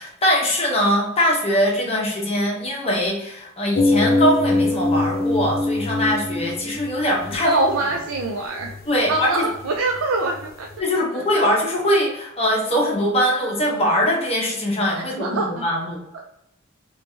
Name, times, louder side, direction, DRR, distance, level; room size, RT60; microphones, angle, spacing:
voice 1, 0.0-7.8 8.9-9.5 10.8-16.0, equal, 30° left, -3 dB, 1.0 m, -22 dB
sound 1, 3.7-10.8, left 2 dB, 45° left, 0.5 m, -24 dB
voice 2, 7.4-8.7 9.1-10.7 11.2-11.3 15.0-15.6, right 2 dB, 75° right, 1 dB, 0.4 m, -24 dB
3.2 x 3.1 x 2.8 m, 0.81 s
head